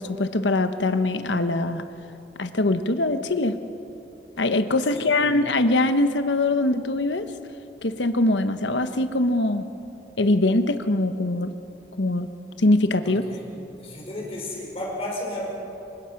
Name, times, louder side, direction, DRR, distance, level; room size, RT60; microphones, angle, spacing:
voice 1, 0.0-1.9 2.4-3.6 4.4-7.3 7.8-9.7 10.2-11.5 12.0-12.3 12.6-13.2, left 2 dB, 80° left, 9 dB, 1.1 m, -22 dB
voice 2, 4.9-5.3 13.0-13.4 13.8-15.5, left 1 dB, 30° left, -2 dB, 5.8 m, -33 dB
27.5 x 24.0 x 6.0 m, 2.9 s
head